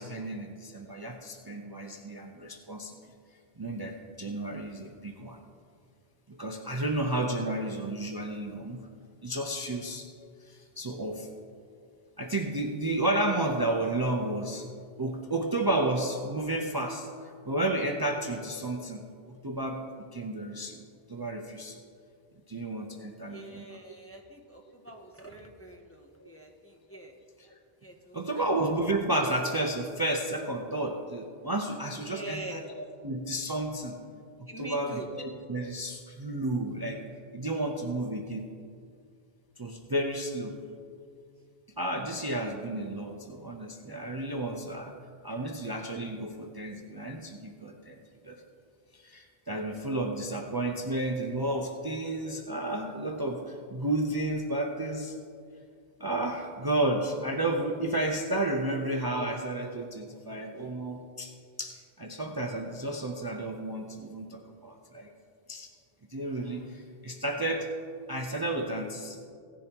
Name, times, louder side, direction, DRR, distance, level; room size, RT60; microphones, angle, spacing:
voice 1, 0.0-2.9 3.6-5.4 6.3-8.8 9.2-10.1 10.4-11.3 12.2-14.7 15.0-19.0 19.3-19.9 20.1-20.8 21.1-21.8 22.5-24.0 27.4-27.5 28.1-34.0 34.6-37.0 37.3-38.4 39.6-40.6 41.8-44.9 45.2-48.4 48.9-55.2 56.0-61.3 61.6-65.1 65.5-65.7 66.1-67.7 68.1-69.3, right 1 dB, 25° right, 2 dB, 0.6 m, -32 dB
voice 2, 23.3-27.1 27.8-28.5 32.0-32.6 34.5-35.1 40.6-40.8, right 1 dB, 15° left, 0 dB, 0.8 m, -44 dB
16.5 x 10.0 x 2.9 m, 2.2 s
omnidirectional pair, 1.0 m